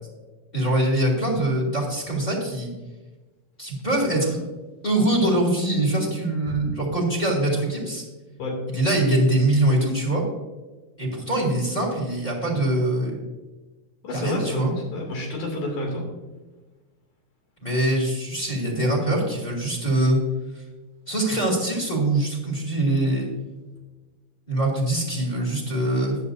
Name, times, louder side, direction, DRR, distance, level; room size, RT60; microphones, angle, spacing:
voice 1, 0.5-2.7 3.6-4.4 4.8-8.0 8.7-10.2 11.0-13.2 14.1-14.7 17.6-20.2 20.5-20.6 21.1-23.3 24.5-26.2, right 1 dB, 15° left, -1 dB, 2.6 m, -23 dB
voice 2, 14.0-16.1, left 1 dB, 70° left, 0 dB, 4.3 m, -29 dB
14.5 x 11.0 x 2.7 m, 1.2 s
omnidirectional pair, 3.7 m